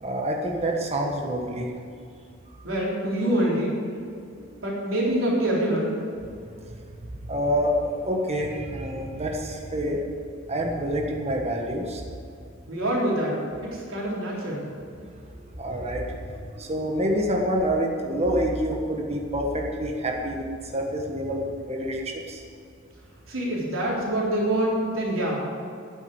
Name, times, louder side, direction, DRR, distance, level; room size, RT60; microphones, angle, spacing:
voice 1, 0.0-1.7 6.6-6.8 7.0-10.0 10.5-12.0 15.6-20.4 20.7-22.4, equal, 30° right, 1 dB, 1.4 m, -27 dB
voice 2, 2.6-3.8 4.4-6.0 12.7-14.7 23.3-25.4, right 1 dB, 80° right, -4 dB, 3.8 m, -26 dB
12.0 x 9.7 x 7.9 m, 2.4 s
head